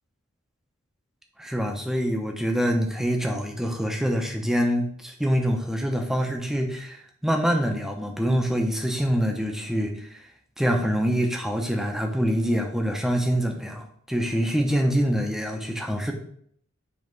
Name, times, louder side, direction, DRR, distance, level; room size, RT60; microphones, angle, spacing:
voice 1, 1.4-10.2 10.6-16.1, equal, ahead, 2 dB, 0.8 m, -25 dB
5.4 x 3.5 x 5.2 m, 0.63 s
head